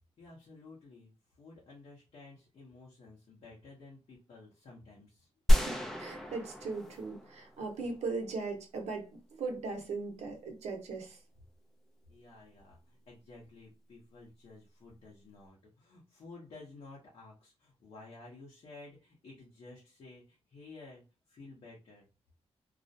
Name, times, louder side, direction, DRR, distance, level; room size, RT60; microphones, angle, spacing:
voice 1, 0.2-1.1 1.4-5.3 7.8-7.9 12.1-21.0 21.3-22.0, left 3 dB, 65° left, -4 dB, 0.7 m, -53 dB
sound 1, 5.5-7.8, equal, 5° left, 0.4 m, -29 dB
voice 2, 5.5-9.1 9.4-11.2, right 3 dB, 85° right, 3 dB, 0.8 m, -38 dB
2.3 x 2.1 x 2.6 m, 0.31 s
cardioid pair, 105°, 11 cm